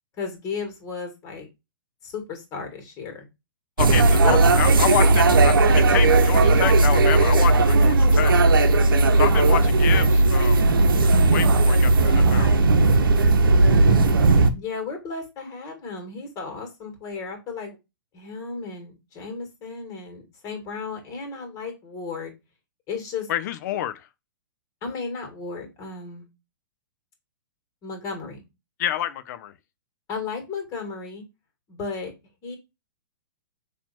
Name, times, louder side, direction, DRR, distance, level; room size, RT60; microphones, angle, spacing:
voice 1, 0.2-1.5 2.0-3.3 4.2-4.4 13.6-17.8 18.1-22.3 22.9-23.3 24.8-26.3 27.8-28.4 30.1-31.2 31.7-32.1 32.4-32.6, left 4 dB, 30° left, 2.0 m, -34 dB
voice 2, 3.8-8.3 9.2-10.7 11.3-12.5 23.3-24.0 28.8-29.5, left 11 dB, 55° left, 0.6 m, -28 dB
sound 1, 3.8-14.5, right 2 dB, 85° right, 0.7 m, -17 dB
4.3 x 2.9 x 4.2 m
hypercardioid pair, 125°, 11 cm